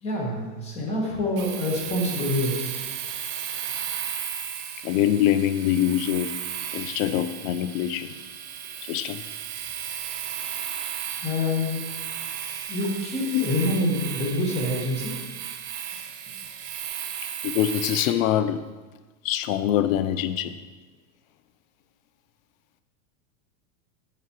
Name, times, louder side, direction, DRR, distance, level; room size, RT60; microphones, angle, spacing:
voice 1, 0.0-2.8 11.2-11.8 12.7-15.2, left 1 dB, 15° left, -2 dB, 1.2 m, -26 dB
Domestic sounds home sounds, 1.4-18.2, right 9 dB, 45° right, 0.7 m, -35 dB
voice 2, 4.8-6.4 6.7-8.1 8.8-9.2 13.3-13.6 17.4-18.7 19.2-20.6, left 11 dB, 90° left, 12 dB, 0.5 m, -24 dB
8.0 x 6.7 x 3.0 m, 1.3 s
supercardioid pair, 165°, 39 cm